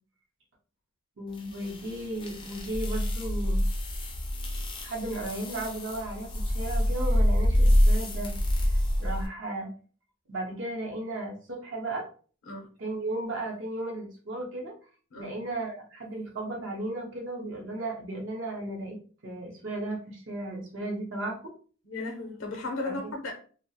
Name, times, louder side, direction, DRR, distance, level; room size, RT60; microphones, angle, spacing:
voice 1, 1.2-3.6 4.8-8.3 8.7-9.7 10.3-12.0 12.8-14.7 15.1-21.5 22.9-23.1, right 2 dB, 60° right, 0.6 m, -35 dB
sound 1, 1.4-9.3, equal, 25° left, 0.3 m, -26 dB
voice 2, 21.8-23.3, left 2 dB, 70° left, 0.6 m, -35 dB
2.3 x 2.0 x 2.6 m
head